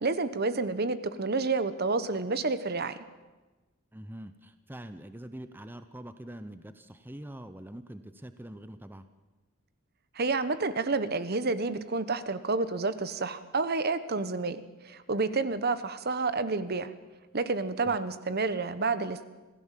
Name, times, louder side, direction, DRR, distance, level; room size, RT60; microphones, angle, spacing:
voice 1, 0.0-3.0 10.1-16.9 17.3-19.2, right 3 dB, 50° right, 13 dB, 1.1 m, -29 dB
voice 2, 3.9-9.1 17.9-18.0, right 1 dB, 10° right, 10 dB, 0.7 m, -44 dB
27.0 x 16.5 x 7.5 m, 1.2 s
head